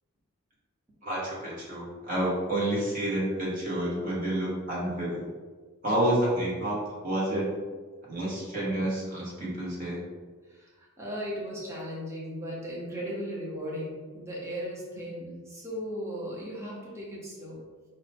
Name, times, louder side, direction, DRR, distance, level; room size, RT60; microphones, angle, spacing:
voice 1, 1.0-5.3 5.8-7.5 8.1-10.0, right 1 dB, 40° right, -6 dB, 1.3 m, -29 dB
voice 2, 10.5-17.6, equal, 15° right, -5 dB, 0.8 m, -37 dB
4.9 x 2.2 x 4.2 m, 1.4 s
head